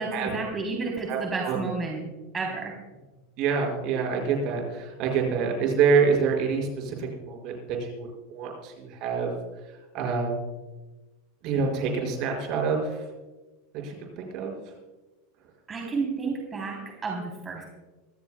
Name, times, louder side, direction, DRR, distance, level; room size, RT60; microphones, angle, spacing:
voice 1, 0.0-2.0 2.3-2.8 15.7-17.6, right 4 dB, 25° right, 0 dB, 3.3 m, -31 dB
voice 2, 3.4-7.5 7.8-9.3 9.9-10.3 11.4-13.0 13.8-14.5, right 5 dB, 55° right, 1 dB, 5.3 m, -26 dB
25.0 x 15.0 x 2.2 m, 1.2 s
hypercardioid pair, 100°, 0 cm